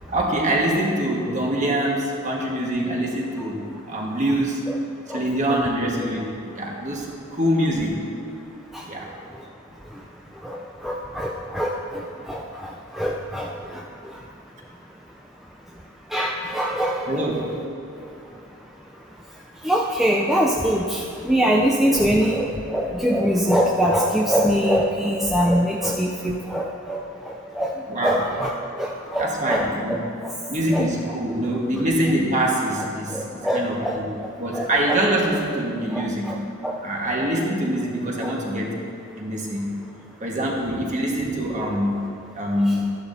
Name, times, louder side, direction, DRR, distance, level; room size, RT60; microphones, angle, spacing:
voice 1, 0.1-3.6 3.9-4.6 5.1-8.0 8.9-9.1 17.1-17.4 27.9-28.2 29.2-30.1 30.5-34.1 34.4-36.3 36.8-38.8 39.1-39.7 40.2-41.9 42.3-42.8, right 1 dB, 35° right, -2 dB, 1.5 m, -24 dB
voice 2, 10.4-13.8 16.1-17.6 19.6-27.7 28.0-28.5 28.8-30.0 30.7-30.9 33.1-34.0 34.5-34.7 35.9-36.4 36.6-36.8 38.2-38.3, equal, ahead, -3 dB, 0.4 m, -23 dB
14.0 x 11.0 x 2.7 m, 2.6 s
head